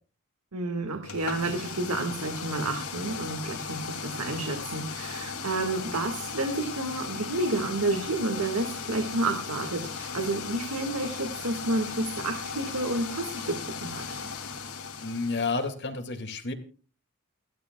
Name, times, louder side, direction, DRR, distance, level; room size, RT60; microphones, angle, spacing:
voice 1, 0.5-14.2, right 2 dB, 90° right, 5 dB, 1.9 m, -30 dB
sound 1, 1.0-15.7, left 5 dB, 70° left, 2.6 m, -37 dB
voice 2, 15.0-16.5, left 3 dB, 50° left, 5 dB, 2.3 m, -30 dB
30.0 x 12.5 x 2.3 m, 0.38 s
head